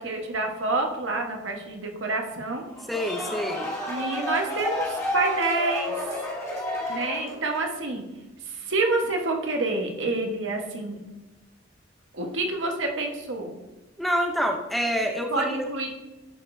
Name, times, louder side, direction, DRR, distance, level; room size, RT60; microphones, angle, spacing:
voice 1, 0.0-2.6 3.8-6.0 6.9-8.0 8.5-11.0 12.1-13.6 15.3-15.9, right 2 dB, 75° right, 2 dB, 1.3 m, -28 dB
sound 1, 2.7-7.7, left 1 dB, 15° left, 1.5 m, -31 dB
voice 2, 2.9-3.7 14.0-15.6, equal, ahead, 2 dB, 0.6 m, -27 dB
11.0 x 5.1 x 2.7 m, 1.0 s
head